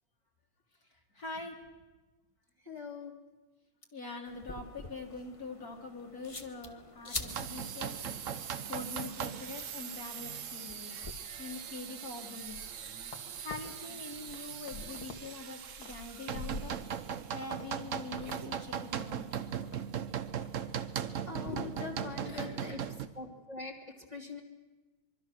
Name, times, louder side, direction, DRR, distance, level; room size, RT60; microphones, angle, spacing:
voice 1, 1.1-1.6 3.9-8.0 8.7-10.9 11.4-12.6 13.4-16.8 17.3-19.2 22.2-22.8, left 3 dB, 45° left, 1 dB, 2.4 m, -44 dB
voice 2, 2.6-3.2 20.7-20.9 21.3-22.8 23.1-24.4, left 4 dB, 20° right, 0 dB, 2.4 m, -42 dB
sound 1, 4.3-11.1, left 3 dB, 20° left, 1.0 m, -46 dB
sound 2, 7.3-23.1, right 8 dB, 55° right, 0.9 m, -39 dB
sound 3, 12.4-13.6 14.0-15.2 15.5-17.0 17.4-17.6 17.9-18.4 18.7-18.8 19.2-19.8 20.2-20.5 20.8-21.1, left 3 dB, 70° left, 2.8 m, -46 dB
25.0 x 23.5 x 6.3 m, 1.2 s
omnidirectional pair, 2.3 m